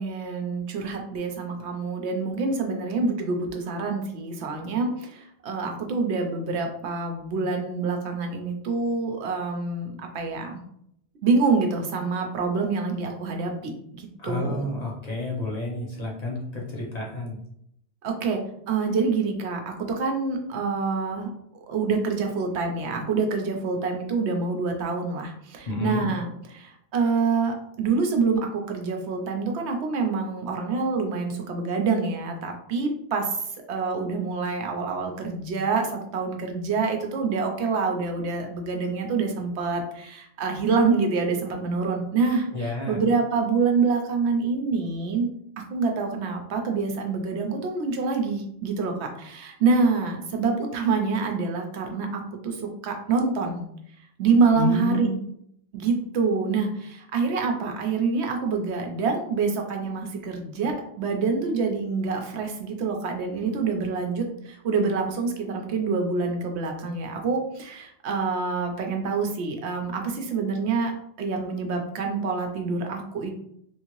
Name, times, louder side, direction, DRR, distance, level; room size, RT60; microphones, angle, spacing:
voice 1, 0.0-10.6 11.2-14.7 18.0-18.4 18.7-21.3 21.7-33.3 33.7-45.3 45.6-53.6 54.2-55.1 55.7-70.9 71.2-73.3, right 4 dB, 75° right, 3 dB, 0.9 m, -26 dB
voice 2, 14.2-17.4 25.7-26.1 42.5-43.0 54.5-55.3, left 2 dB, 40° left, -3 dB, 0.8 m, -29 dB
3.2 x 2.7 x 3.0 m, 0.72 s
omnidirectional pair, 1.1 m